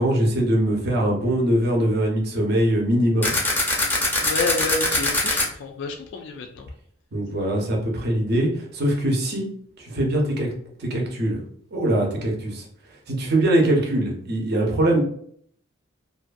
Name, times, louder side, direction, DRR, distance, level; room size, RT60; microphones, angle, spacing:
voice 1, 0.0-3.3 7.1-9.4 9.8-10.5 10.8-11.4 11.7-12.7 13.1-15.0, right 1 dB, 55° right, 0 dB, 0.7 m, -22 dB
sound 1, 3.2-5.5, left 2 dB, 10° left, 0.5 m, -22 dB
voice 2, 4.2-6.7, left 3 dB, 65° left, 4 dB, 0.3 m, -29 dB
2.5 x 2.3 x 2.5 m, 0.63 s
head